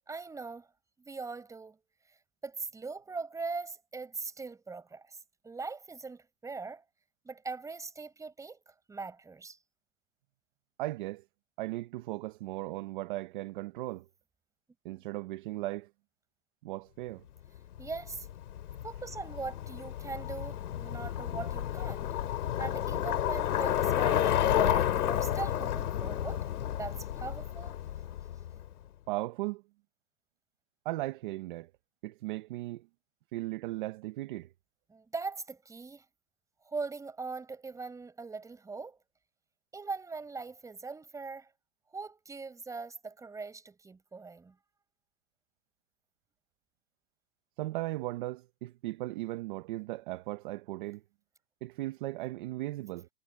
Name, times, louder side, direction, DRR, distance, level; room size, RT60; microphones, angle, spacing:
voice 1, 0.1-0.7 1.0-1.8 2.1-2.2 2.4-5.2 5.4-6.8 7.2-9.6 14.9-15.0 17.8-18.3 18.8-22.1 22.6-26.4 26.8-27.8 34.9-36.1 36.6-39.0 39.7-41.5 41.9-44.6, right 4 dB, 5° right, 5.9 m, -41 dB
voice 2, 10.8-11.2 11.6-14.0 14.8-15.9 16.6-17.2 29.1-29.6 30.8-31.7 32.0-32.9 33.3-34.5 47.6-51.0 51.6-53.1, right 18 dB, 35° right, 0.8 m, -37 dB
Bicycle, 17.8-28.7, left 11 dB, 80° left, 2.6 m, -31 dB
hypercardioid pair, 165°, 45 cm